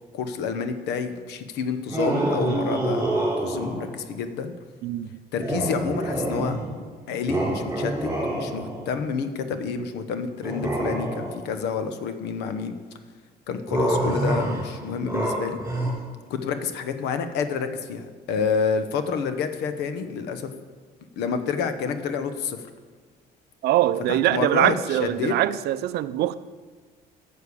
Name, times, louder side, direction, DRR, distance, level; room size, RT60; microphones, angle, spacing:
voice 1, 0.1-4.5 5.3-6.6 7.1-12.7 13.5-15.6 16.3-20.5 21.2-22.6 24.1-24.7 25.0-25.3, left 6 dB, 80° left, 9 dB, 1.0 m, -29 dB
sound 1, 1.9-4.0 5.4-6.8 7.3-8.9 10.4-11.5 13.7-15.9, right 1 dB, 15° right, 3.3 m, -26 dB
voice 2, 4.8-5.2 23.6-26.3, right 14 dB, 70° right, 15 dB, 0.5 m, -23 dB
9.5 x 6.6 x 6.9 m, 1.5 s
cardioid pair, 110°, 17 cm